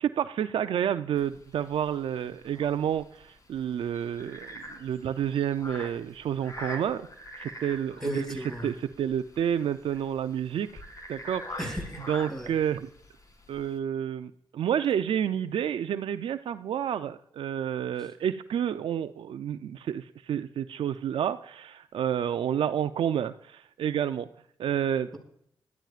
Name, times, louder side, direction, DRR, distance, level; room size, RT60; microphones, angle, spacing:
voice 1, 0.0-7.1 7.4-8.4 8.6-10.8 11.1-11.6 12.1-12.9 13.5-24.3 24.6-25.1, right 9 dB, 75° right, 11 dB, 0.5 m, -29 dB
sound 1, 1.2-13.8, equal, 40° left, 2.4 m, -44 dB
voice 2, 8.0-8.7 11.6-12.5 18.0-18.1, right 1 dB, 5° left, 1 dB, 6.8 m, -35 dB
20.5 x 13.5 x 2.5 m, 0.68 s
supercardioid pair, 45°, 9 cm